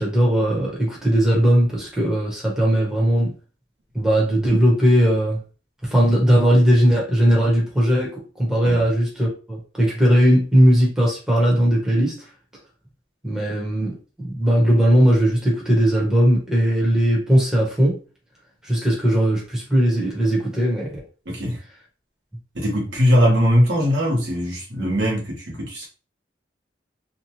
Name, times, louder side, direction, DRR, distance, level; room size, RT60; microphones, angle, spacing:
voice 1, 0.0-3.3 3.9-5.4 5.8-12.2 13.2-18.0 18.6-21.0, equal, 5° right, 0.9 m, -18 dB
voice 2, 21.3-21.6 22.5-25.9, equal, 70° right, 1.1 m, -20 dB
2.7 x 2.2 x 2.9 m
head